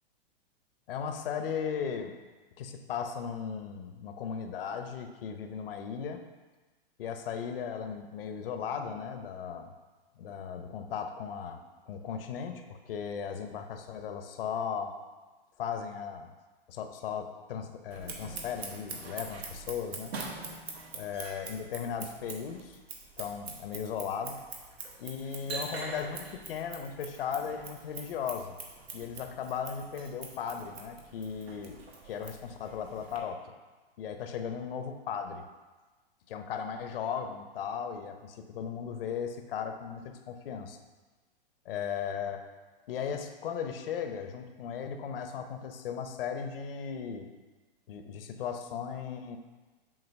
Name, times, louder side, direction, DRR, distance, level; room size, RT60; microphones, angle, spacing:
voice 1, 0.9-2.2 2.6-6.2 7.0-9.7 10.2-14.9 15.6-16.3 16.7-20.1 20.9-22.8 23.2-24.4 25.0-28.6 28.9-33.5 34.0-35.4 36.3-40.8 41.6-42.4 42.9-47.3 47.9-49.4, left 7 dB, 70° left, 7 dB, 0.8 m, -37 dB
Scissors, 17.9-33.2, right 4 dB, 85° right, 1.2 m, -44 dB
7.2 x 3.0 x 5.4 m, 1.3 s
hypercardioid pair, 125°, 30 cm